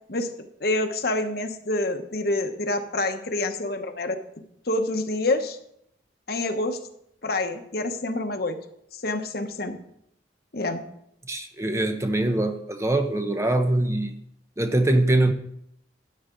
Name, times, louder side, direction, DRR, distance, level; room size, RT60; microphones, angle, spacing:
voice 1, 0.6-4.2 4.7-5.6 6.3-6.8 7.2-8.6 8.9-9.8 10.5-10.8, left 2 dB, 55° left, 1.1 m, -27 dB
voice 2, 11.3-14.2 14.6-15.3, right 1 dB, 15° right, 0.6 m, -23 dB
13.0 x 10.0 x 3.9 m
head